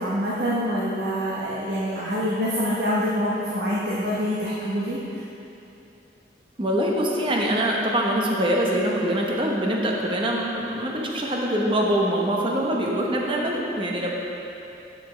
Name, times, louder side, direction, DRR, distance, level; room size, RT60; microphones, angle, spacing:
voice 1, 0.0-5.0, equal, 65° right, -7 dB, 1.0 m, -25 dB
voice 2, 6.6-14.1, equal, 30° right, -1 dB, 0.8 m, -24 dB
11.5 x 5.8 x 3.3 m, 2.9 s
head